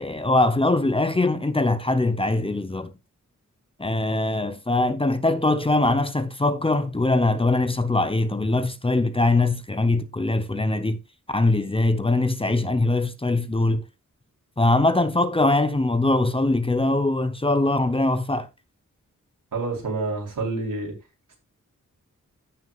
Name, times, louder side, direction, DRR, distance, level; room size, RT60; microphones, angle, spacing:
voice 1, 0.0-2.9 3.8-11.0 11.3-13.8 14.6-18.5, left 2 dB, 15° left, 0.9 m, -22 dB
voice 2, 19.5-20.9, right 3 dB, 85° right, 4.1 m, -28 dB
14.5 x 6.4 x 2.5 m
wide cardioid pair, 130°, 32 cm